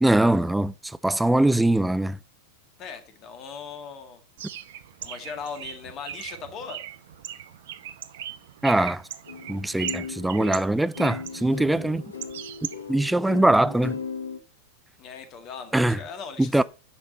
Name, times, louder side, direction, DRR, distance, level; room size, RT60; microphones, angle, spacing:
voice 1, 0.0-2.2 8.6-9.0 9.5-12.0 12.9-14.0 15.7-16.0 16.4-16.6, right 1 dB, 5° right, 0.4 m, -22 dB
voice 2, 2.8-4.2 5.0-6.8 15.0-16.6, left 6 dB, 35° left, 1.8 m, -39 dB
Bird, 4.4-13.1, right 11 dB, 55° right, 0.7 m, -39 dB
sound 1, 9.3-14.4, left 6 dB, 75° left, 1.0 m, -37 dB
10.0 x 6.1 x 4.2 m
figure-of-eight pair, 90°, 0 cm